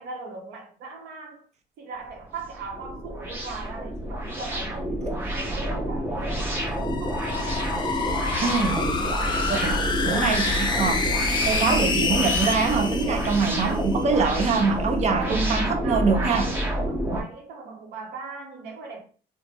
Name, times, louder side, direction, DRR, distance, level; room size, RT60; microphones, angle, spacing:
voice 1, 0.0-1.4 1.8-8.3 9.0-9.7 15.1-19.0, right 4 dB, 80° right, 0.8 m, -39 dB
sound 1, 2.1-17.2, right 1 dB, 15° right, 0.8 m, -28 dB
sound 2, 6.6-14.0, left 4 dB, 25° left, 0.5 m, -28 dB
voice 2, 8.4-9.0 9.5-11.2 11.4-16.4, right 4 dB, 40° right, 0.6 m, -24 dB
2.8 x 2.0 x 3.3 m
cardioid pair, 110°, 17 cm